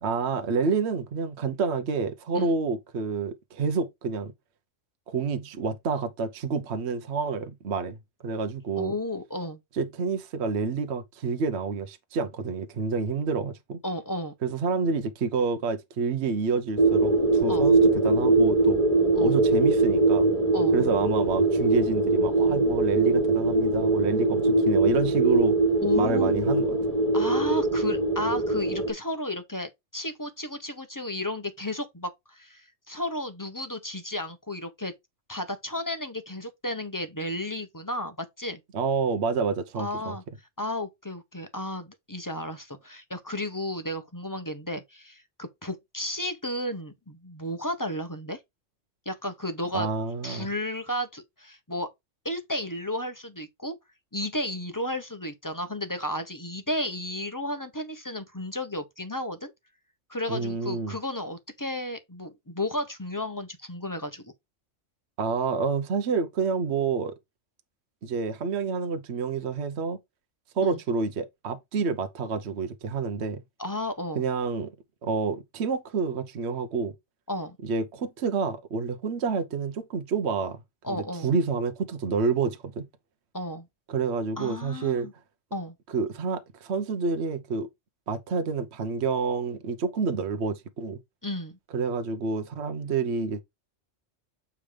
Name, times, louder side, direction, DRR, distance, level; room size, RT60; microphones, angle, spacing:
voice 1, 0.0-4.3 5.1-8.0 8.2-8.9 9.7-13.8 14.4-17.8 18.0-18.8 19.2-20.3 20.7-25.6 25.9-26.8 38.7-40.2 49.7-50.5 60.3-60.9 65.2-67.1 68.0-70.0 70.5-73.4 74.1-74.7 75.0-76.9 77.6-80.6 80.9-82.9 83.9-85.1 85.9-87.7 88.1-91.0 91.7-93.4, right 4 dB, 60° right, 1.1 m, -28 dB
voice 2, 8.7-9.6 13.8-14.3 17.5-17.7 19.1-19.3 20.5-20.8 25.8-26.6 27.1-34.9 35.3-38.6 39.8-40.2 40.6-48.4 49.0-49.9 50.2-51.9 52.2-53.7 54.1-59.5 60.1-64.3 70.6-70.8 73.6-74.2 77.3-77.6 80.8-81.3 83.3-83.7 84.4-85.1 85.5-85.7 91.2-91.5, left 1 dB, 20° left, 0.9 m, -33 dB
sound 1, 16.8-28.9, right 2 dB, 30° right, 1.7 m, -22 dB
7.2 x 3.3 x 5.0 m
omnidirectional pair, 1.3 m